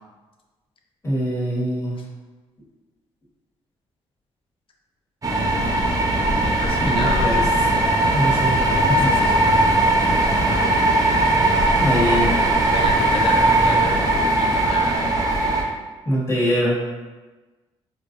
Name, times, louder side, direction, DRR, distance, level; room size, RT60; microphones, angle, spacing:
voice 1, 1.0-2.0 6.8-7.5 8.1-8.7 9.0-9.1 11.8-12.3 16.0-16.7, equal, 25° left, -6 dB, 1.4 m, -22 dB
sound 1, 5.2-15.6, right 1 dB, 30° right, 0.8 m, -19 dB
voice 2, 6.4-7.3 9.0-9.9 11.5-11.6 11.9-12.0 12.7-14.1 14.4-15.1, left 3 dB, 50° left, 1 dB, 0.6 m, -31 dB
4.6 x 2.5 x 2.6 m, 1.3 s
supercardioid pair, 65°, 11 cm